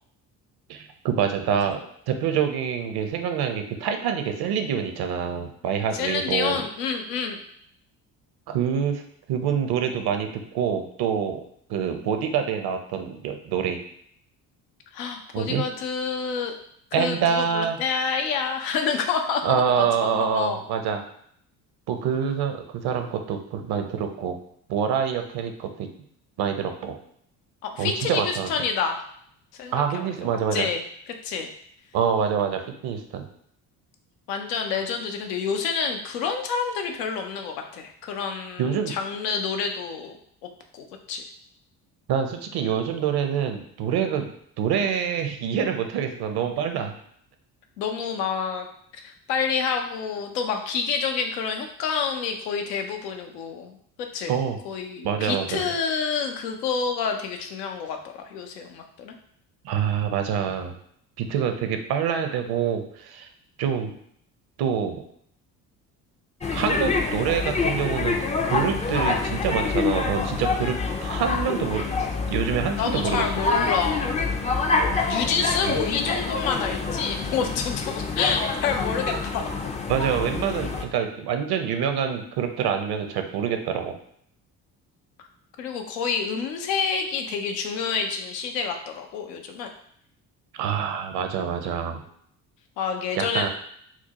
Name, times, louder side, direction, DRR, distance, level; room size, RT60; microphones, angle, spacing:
voice 1, 0.7-6.6 8.5-9.0 9.3-11.4 11.7-13.8 15.3-15.6 16.9-17.8 19.4-21.0 21.9-24.4 24.7-25.9 26.4-27.0 27.8-28.5 29.7-30.7 31.9-33.3 38.6-39.0 42.1-44.3 44.6-46.9 54.3-54.6 55.0-55.6 59.6-60.7 61.2-63.3 63.6-63.9 64.6-65.0 66.5-68.2 68.4-73.3 75.7-75.8 79.9-83.9 90.5-92.0 93.2-93.5, right 7 dB, 55° right, 6 dB, 0.7 m, -26 dB
voice 2, 5.9-7.4 14.9-16.5 17.0-19.9 20.1-20.6 27.6-29.0 29.6-30.1 30.5-30.8 31.2-31.5 32.3-32.5 34.3-40.2 40.7-41.2 47.8-48.7 49.0-54.4 54.6-58.0 58.2-59.1 72.7-74.2 74.7-79.7 85.6-89.7 92.8-93.5, left 6 dB, 80° left, 4 dB, 0.6 m, -28 dB
sound 1, 66.4-80.8, left 4 dB, 15° left, 0.4 m, -26 dB
4.4 x 2.1 x 2.9 m, 0.67 s
hypercardioid pair, 55°, 47 cm